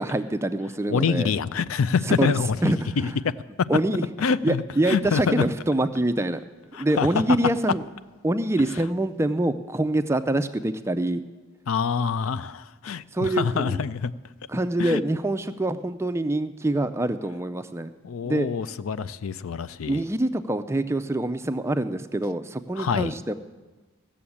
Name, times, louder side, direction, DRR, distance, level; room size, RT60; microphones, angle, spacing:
voice 1, 0.0-1.3 2.1-2.4 2.6-3.1 3.7-4.1 4.4-6.4 6.8-7.8 8.2-11.2 13.1-13.8 14.5-17.9 18.2-18.5 19.9-23.3, right 1 dB, 15° right, 10 dB, 0.4 m, -25 dB
voice 2, 0.9-3.1 4.2-5.4 6.7-7.1 11.7-14.1 14.8-15.0 18.0-20.0 22.8-23.1, left 6 dB, 80° left, 16 dB, 0.4 m, -26 dB
15.5 x 7.0 x 8.6 m, 1.3 s
head